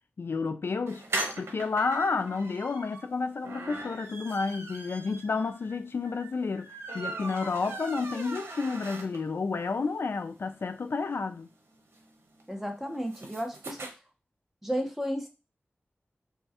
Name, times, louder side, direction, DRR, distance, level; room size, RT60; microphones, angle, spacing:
voice 1, 0.2-1.0 1.4-11.5, left 4 dB, 65° left, 0.3 m, -31 dB
sound 1, 0.9-9.5 9.8-9.9 10.2-10.3 10.5-13.9, right 2 dB, 85° right, 0.9 m, -40 dB
voice 2, 12.5-13.9 14.6-15.3, equal, 5° right, 1.1 m, -33 dB
5.3 x 2.4 x 2.8 m
wide cardioid pair, 65°, 4 cm